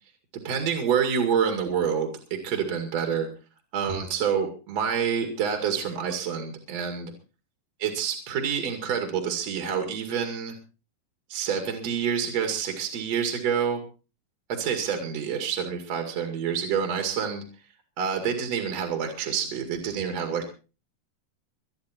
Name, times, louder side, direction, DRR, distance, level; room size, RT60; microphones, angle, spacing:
voice 1, 0.4-3.3 3.7-7.1 7.8-10.5 11.3-13.8 14.5-17.4 18.0-20.5, right 7 dB, 55° right, 5 dB, 3.2 m, -27 dB
23.5 x 9.7 x 4.4 m, 0.35 s
omnidirectional pair, 3.7 m